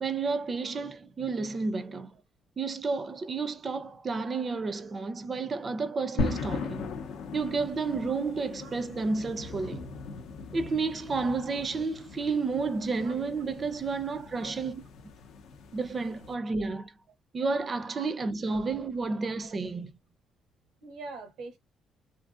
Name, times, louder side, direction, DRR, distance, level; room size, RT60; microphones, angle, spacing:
voice 1, 0.0-2.1 2.6-6.9 7.3-9.8 10.5-14.8 15.7-16.9 17.3-19.9, right 4 dB, 40° right, 0.4 m, -31 dB
sound 1, 6.2-16.3, left 4 dB, 85° left, 0.6 m, -38 dB
voice 2, 20.8-21.6, right 3 dB, 90° right, 0.7 m, -43 dB
2.6 x 2.6 x 2.4 m
cardioid pair, 90°, 0 cm